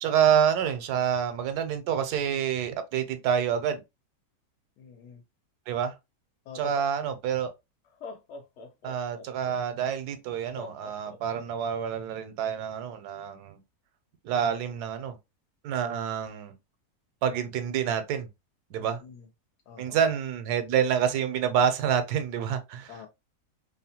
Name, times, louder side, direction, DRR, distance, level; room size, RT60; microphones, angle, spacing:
voice 1, 0.0-3.8 5.7-5.9 6.5-7.5 8.8-13.6 14.2-15.2 15.6-16.5 17.2-18.3 18.7-19.0 19.8-22.9, right 8 dB, 80° right, 1.1 m, -27 dB
voice 2, 4.8-5.2 6.4-6.7 18.8-19.3 19.7-20.0 22.9-23.1, left 8 dB, 85° left, 1.1 m, -46 dB
Laughter, 7.1-7.2 7.8-9.6 10.6-11.8, left 3 dB, 65° left, 0.7 m, -44 dB
2.8 x 2.1 x 2.7 m
omnidirectional pair, 1.7 m